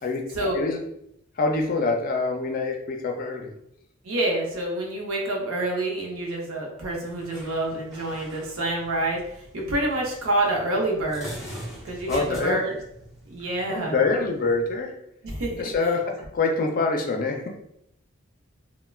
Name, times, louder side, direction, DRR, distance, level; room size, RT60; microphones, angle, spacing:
voice 1, 0.0-0.8 1.4-3.5 12.1-12.6 13.7-15.0 15.5-17.6, left 3 dB, 40° left, 3 dB, 0.4 m, -25 dB
voice 2, 4.0-11.3 11.8-12.7 13.3-14.0 15.2-15.7, right 1 dB, 90° right, -1 dB, 0.7 m, -27 dB
sound 1, 6.8-14.8, equal, ahead, 0.7 m, -43 dB
3.2 x 2.1 x 2.3 m, 0.76 s
head